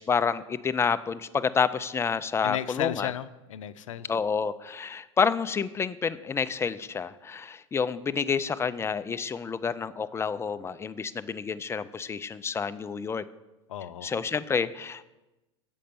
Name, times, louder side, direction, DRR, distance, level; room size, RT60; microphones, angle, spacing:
voice 1, 0.0-3.1 4.1-13.2 14.0-15.0, left 6 dB, 15° left, 13 dB, 0.4 m, -29 dB
voice 2, 2.4-4.1 13.7-14.1, left 12 dB, 85° left, 13 dB, 0.5 m, -34 dB
7.5 x 5.3 x 6.8 m, 1.0 s
hypercardioid pair, 100°, 16 cm